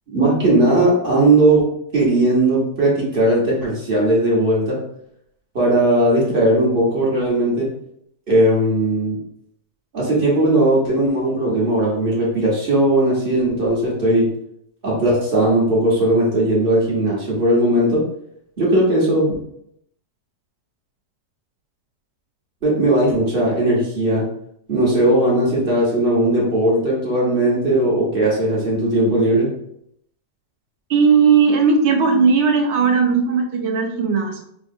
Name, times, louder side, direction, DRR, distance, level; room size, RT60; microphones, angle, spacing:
voice 1, 0.1-4.8 5.5-7.7 8.3-9.2 9.9-14.3 14.8-18.0 18.6-19.3 22.6-24.3 24.7-29.5, right 1 dB, 35° right, -5 dB, 1.2 m, -18 dB
voice 2, 30.9-34.4, right 5 dB, 65° right, 2 dB, 0.7 m, -16 dB
4.7 x 2.3 x 2.6 m, 0.72 s
omnidirectional pair, 1.7 m